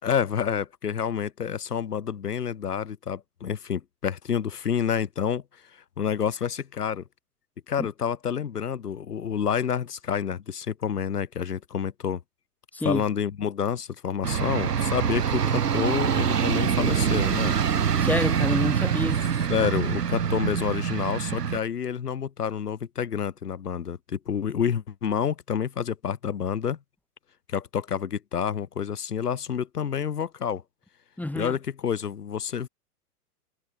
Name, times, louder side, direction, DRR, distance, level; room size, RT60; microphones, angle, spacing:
voice 1, 0.0-5.4 6.0-7.0 7.7-12.2 12.8-17.6 19.5-26.8 27.5-30.6 31.4-32.7, left 8 dB, 80° left, 6.8 m, -28 dB
voice 2, 12.7-13.0 18.0-19.2 19.6-19.7 31.2-31.6, left 1 dB, 5° left, 7.0 m, -28 dB
sound 1, 14.2-21.6, right 7 dB, 90° right, 1.7 m, -25 dB
hypercardioid pair, 120°, 46 cm